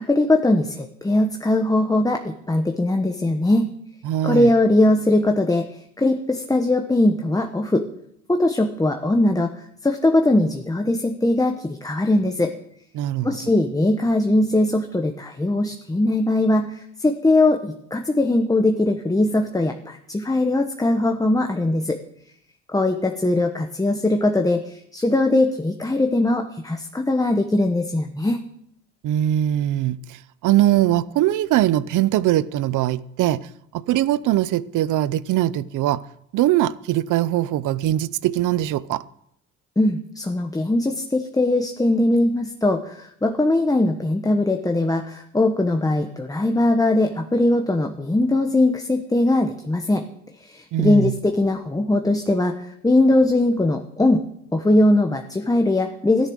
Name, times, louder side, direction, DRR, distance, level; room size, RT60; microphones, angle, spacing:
voice 1, 0.0-3.7 4.2-5.7 6.0-7.8 8.3-9.5 9.8-12.5 13.2-22.0 22.7-28.4 39.8-50.0 50.4-52.5 52.8-54.2 54.5-56.3, left 2 dB, 10° left, 1.0 m, -20 dB
voice 2, 4.0-4.5 12.9-13.4 29.0-33.5 33.7-36.0 36.3-39.0 50.7-51.2, right 13 dB, 85° right, 0.6 m, -21 dB
13.0 x 10.5 x 6.3 m
cardioid pair, 90°, 30 cm